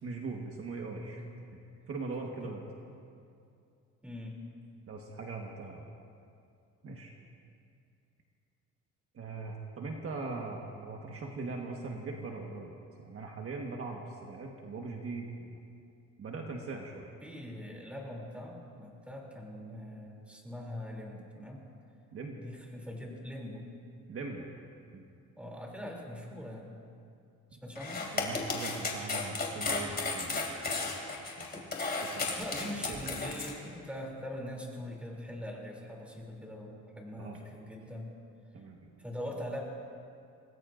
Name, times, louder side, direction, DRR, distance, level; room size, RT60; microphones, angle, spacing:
voice 1, 0.0-1.2 1.9-2.6 4.9-5.8 6.8-7.2 9.1-15.5 16.2-17.1 22.1-22.4 24.1-24.5 24.9-25.0 27.5-27.6 28.1-30.5 31.4-31.7 31.9-32.3 32.7-33.0 37.2-37.4 38.5-39.0, right 3 dB, 45° right, 0 dB, 1.4 m, -41 dB
voice 2, 4.0-4.4 17.2-21.6 22.4-23.7 25.4-26.7 27.5-28.0 32.3-38.1 39.0-39.6, left 1 dB, 5° right, -1 dB, 3.0 m, -42 dB
sound 1, 27.7-33.5, left 3 dB, 30° left, 2.6 m, -34 dB
26.0 x 19.5 x 2.6 m, 2.5 s
cardioid pair, 130°, 31 cm